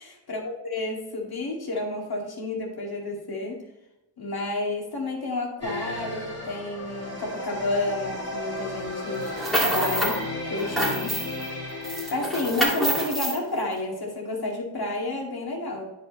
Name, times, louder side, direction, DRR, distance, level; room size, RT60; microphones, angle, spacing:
voice 1, 0.0-3.6 4.2-9.3 9.6-11.2 12.1-15.9, left 2 dB, 50° left, -1 dB, 2.3 m, -30 dB
sound 1, 5.6-13.0, left 2 dB, 35° left, 2.7 m, -34 dB
sound 2, 9.2-10.2 10.6-11.5 11.8-13.4, right 1 dB, ahead, 2.3 m, -26 dB
9.2 x 5.6 x 3.1 m, 0.96 s
cardioid pair, 75°, 46 cm